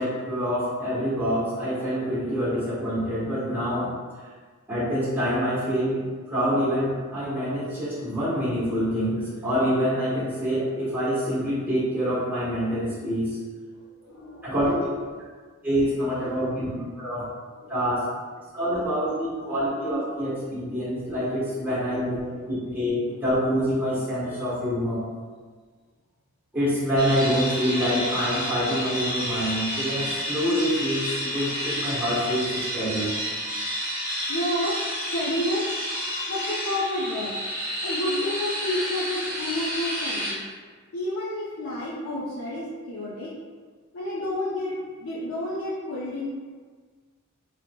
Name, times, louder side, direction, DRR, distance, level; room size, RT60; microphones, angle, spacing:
voice 1, 0.0-3.9 4.7-13.4 14.4-14.8 15.6-17.3 17.7-18.0 18.5-25.0 26.5-33.1, equal, 10° right, -10 dB, 1.0 m, -26 dB
voice 2, 13.8-15.1 15.7-16.9 17.6-18.1 21.4-22.4 23.1-23.2 31.1-31.3 33.1-33.3 34.3-35.8 36.3-37.3 37.8-40.4 40.9-43.3 43.9-44.7 45.0-46.3, left 1 dB, 75° left, -8 dB, 0.5 m, -31 dB
sound 1, 27.0-40.3, equal, 35° right, 1.2 m, -30 dB
3.6 x 2.8 x 2.2 m, 1.5 s
head